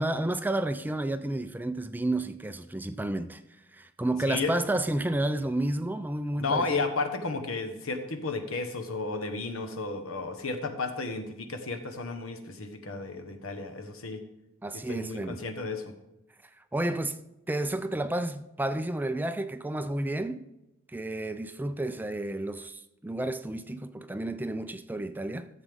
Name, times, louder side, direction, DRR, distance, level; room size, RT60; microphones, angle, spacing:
voice 1, 0.0-3.4 3.7-6.8 14.6-15.4 16.7-17.2 17.5-20.5 20.9-25.5, right 1 dB, 10° right, 0.3 m, -31 dB
voice 2, 6.4-14.2 14.9-15.8, left 3 dB, 80° left, 1.2 m, -33 dB
14.0 x 7.4 x 3.5 m
head